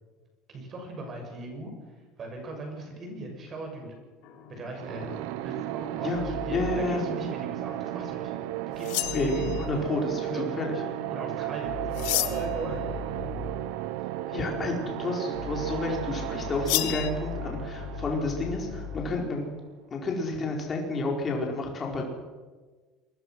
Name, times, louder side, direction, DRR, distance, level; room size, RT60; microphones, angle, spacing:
voice 1, 0.5-1.7 2.2-3.9 4.5-5.2 5.4-8.3 8.7-9.6 10.3-10.4 11.1-12.8, right 2 dB, 25° right, 3 dB, 6.8 m, -38 dB
sound 1, 4.2-7.0 9.0-9.8 10.7-13.7 15.3-19.2, left 5 dB, 60° left, 5.3 m, -40 dB
sound 2, 4.8-19.5, right 14 dB, 70° right, 1.1 m, -35 dB
voice 2, 6.5-7.0 9.1-10.7 14.3-19.5 19.9-22.1, left 3 dB, 20° left, 0 dB, 4.6 m, -30 dB
sound 3, 8.8-9.8 11.9-12.6 16.7-17.1, left 18 dB, 85° left, 1.5 m, -30 dB
28.0 x 22.0 x 6.2 m, 1.4 s
cardioid pair, 170°, 0 cm